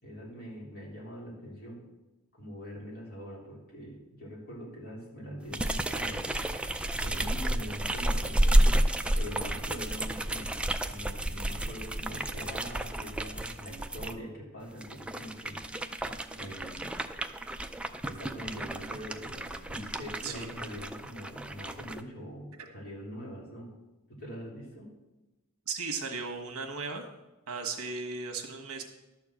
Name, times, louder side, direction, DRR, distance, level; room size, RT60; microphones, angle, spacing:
voice 1, 0.0-1.8 2.4-8.9 9.1-10.6 10.9-16.9 18.0-23.7 24.1-24.9, equal, 45° left, -4 dB, 3.4 m, -43 dB
sound 1, 5.5-14.1 14.7-22.0, right 1 dB, 5° right, 0.3 m, -31 dB
voice 2, 25.7-27.1 27.5-28.8, right 4 dB, 70° right, 3 dB, 1.4 m, -36 dB
12.0 x 4.5 x 7.5 m, 1.0 s
head